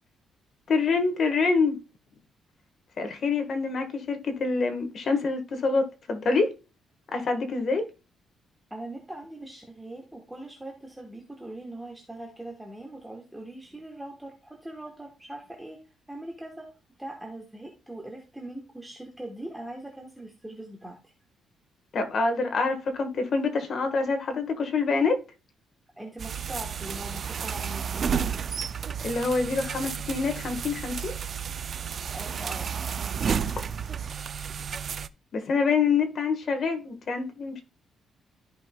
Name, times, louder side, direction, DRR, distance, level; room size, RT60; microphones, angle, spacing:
voice 1, 0.7-1.8 3.0-6.5 7.1-7.8 21.9-25.2 29.0-31.2 35.3-37.6, left 4 dB, 45° left, 1.4 m, -26 dB
voice 2, 8.7-15.8 16.1-16.7 17.0-21.0 26.0-28.1 32.1-32.7, right 1 dB, 5° right, 1.2 m, -41 dB
sound 1, 26.2-35.1, right 7 dB, 40° right, 0.3 m, -32 dB
13.5 x 5.4 x 2.3 m
cardioid pair, 150°, 0 cm